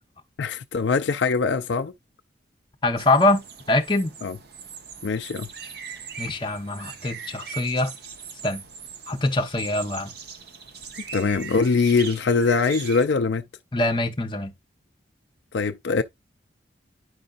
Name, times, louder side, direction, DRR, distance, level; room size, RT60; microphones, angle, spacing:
voice 1, 0.4-1.9 4.2-4.4 5.0-5.5 11.1-13.4 15.5-16.0, left 4 dB, 75° left, 0.4 m, -22 dB
voice 2, 2.8-3.4 3.7-4.1 6.2-7.9 8.4-8.6 9.1-10.1 13.7-14.5, left 2 dB, 25° left, 0.9 m, -23 dB
sound 1, 3.0-13.1, right 6 dB, 60° right, 0.9 m, -40 dB
9.5 x 5.3 x 2.4 m
head